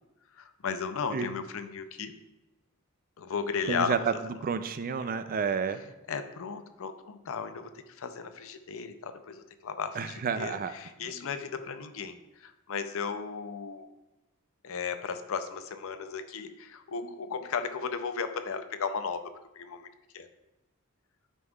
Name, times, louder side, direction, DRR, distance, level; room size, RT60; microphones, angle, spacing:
voice 1, 0.4-2.2 3.2-4.0 6.1-13.9 14.6-19.9 20.1-20.3, left 6 dB, 70° left, 9 dB, 0.5 m, -35 dB
voice 2, 3.7-4.0 4.4-5.8 10.0-10.7, right 6 dB, 40° right, 11 dB, 0.4 m, -30 dB
9.7 x 5.4 x 2.4 m, 1.0 s
head